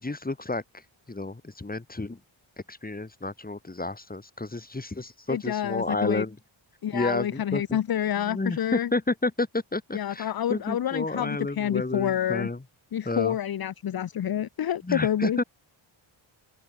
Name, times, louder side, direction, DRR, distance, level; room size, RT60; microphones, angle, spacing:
voice 1, 0.0-2.2 2.7-6.4 6.9-7.8 8.2-12.6 13.0-13.4 14.8-15.4, left 2 dB, 15° left, 4.8 m, -31 dB
voice 2, 5.3-6.2 6.8-8.9 9.9-12.5 12.9-15.4, left 10 dB, 45° left, 0.7 m, -28 dB
open air
wide cardioid pair, 155°, 50 cm